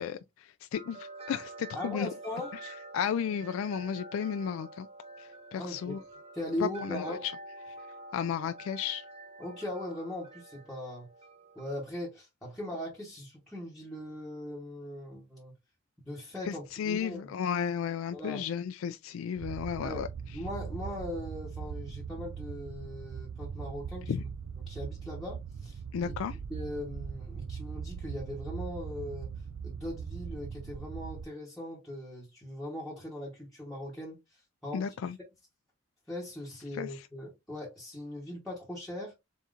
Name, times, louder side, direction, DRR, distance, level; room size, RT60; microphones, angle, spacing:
voice 1, 0.0-2.1 2.9-4.9 5.2-6.0 6.6-7.3 8.1-9.0 16.5-20.1 24.1-24.2 25.9-26.4 34.7-35.2 36.7-37.1, left 7 dB, 80° left, 0.3 m, -33 dB
sound 1, 0.7-11.7, right 2 dB, 30° right, 0.8 m, -48 dB
voice 2, 1.7-2.5 5.6-6.0 6.3-7.3 9.4-11.1 11.5-15.5 16.0-17.3 18.1-18.5 19.8-20.0 20.3-24.3 24.7-26.1 26.5-29.3 29.6-34.9 36.1-39.1, left 1 dB, ahead, 1.1 m, -40 dB
sound 2, 19.4-31.2, right 6 dB, 70° right, 0.3 m, -40 dB
4.2 x 3.6 x 2.5 m
head